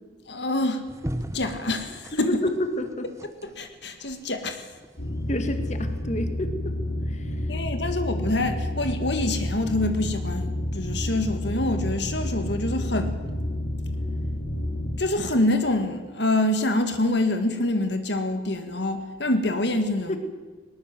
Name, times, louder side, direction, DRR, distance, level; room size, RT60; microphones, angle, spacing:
voice 1, 0.3-0.8 1.3-2.4 3.4-4.7 7.5-13.2 15.0-20.2, left 1 dB, 70° left, 7 dB, 1.9 m, -26 dB
sound 1, 0.9-5.0 5.8-5.9, equal, 15° right, 1.1 m, -37 dB
voice 2, 2.1-3.1 5.3-6.7 7.1-7.3 20.1-20.2, left 1 dB, 40° left, 7 dB, 2.0 m, -29 dB
sound 2, 5.0-15.0, left 1 dB, 90° left, 3.9 m, -29 dB
19.5 x 19.5 x 7.7 m, 1.4 s
head